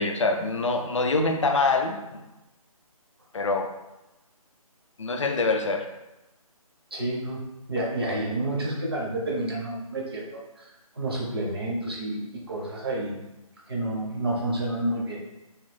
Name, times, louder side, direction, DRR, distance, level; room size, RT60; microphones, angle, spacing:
voice 1, 0.0-2.2 3.3-3.7 5.0-5.9, left 3 dB, 55° left, 5 dB, 0.4 m, -25 dB
voice 2, 6.9-7.4 7.7-10.6 11.0-13.2 13.7-15.2, right 1 dB, 40° right, -3 dB, 0.7 m, -29 dB
3.0 x 2.6 x 3.2 m, 0.98 s
hypercardioid pair, 175°, 19 cm